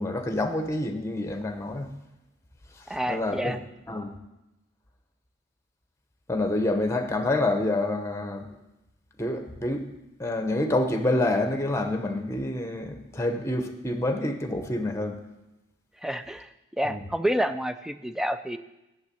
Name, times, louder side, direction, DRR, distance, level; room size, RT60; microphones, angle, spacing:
voice 1, 0.0-1.9 2.7-3.6 3.9-4.1 6.3-8.5 9.2-9.9 10.2-15.2 16.8-17.0, left 2 dB, 15° left, 5 dB, 0.9 m, -27 dB
voice 2, 2.9-3.6 16.0-16.5 16.8-18.6, equal, ahead, 10 dB, 0.4 m, -28 dB
8.9 x 7.3 x 8.3 m, 0.96 s
head